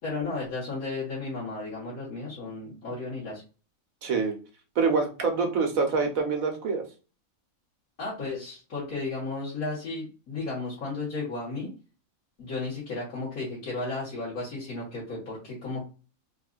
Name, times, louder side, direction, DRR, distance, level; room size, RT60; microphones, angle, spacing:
voice 1, 0.0-3.4 8.0-11.7 12.4-15.8, left 3 dB, 90° left, -8 dB, 2.2 m, -34 dB
voice 2, 4.0-4.4 4.7-6.8, right 4 dB, 75° right, 4 dB, 1.4 m, -25 dB
4.5 x 2.6 x 2.4 m, 0.34 s
omnidirectional pair, 1.4 m